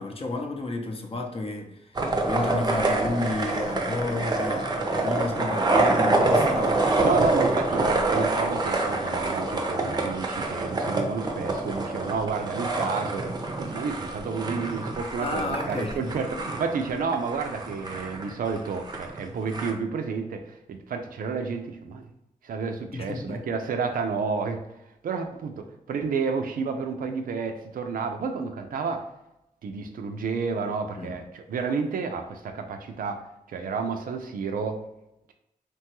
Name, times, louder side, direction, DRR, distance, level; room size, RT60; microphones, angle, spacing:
voice 1, 0.0-6.8 15.2-16.1 22.9-23.5 31.0-31.2, left 2 dB, 40° left, 3 dB, 0.6 m, -32 dB
sound 1, 1.9-19.7, right 2 dB, 30° right, 0.5 m, -26 dB
voice 2, 7.0-13.3 13.6-22.1 22.4-24.6 25.0-29.1 29.6-34.8, right 5 dB, 80° right, 5 dB, 0.4 m, -30 dB
3.0 x 2.2 x 2.9 m, 0.89 s
cardioid pair, 55°, 14 cm